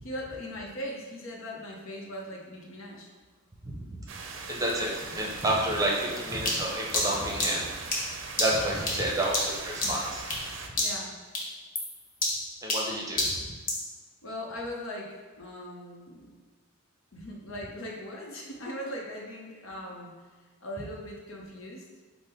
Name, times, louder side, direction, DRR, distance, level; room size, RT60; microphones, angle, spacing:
voice 1, 0.0-3.1 6.0-6.2 8.9-9.1 9.8-10.0 10.7-11.1 14.2-16.3 17.1-20.2 20.6-21.8, left 1 dB, 75° left, -1 dB, 0.8 m, -39 dB
voice 2, 3.6-4.0 4.5-8.0 8.4-10.2 12.6-13.3, right 1 dB, 15° right, -3 dB, 0.7 m, -30 dB
sound 1, 4.1-10.7, right 4 dB, 60° right, 0.5 m, -41 dB
sound 2, 6.5-10.5 10.8-11.1 11.3-13.9, left 1 dB, 40° left, 1.0 m, -30 dB
5.3 x 2.1 x 4.4 m, 1.4 s
head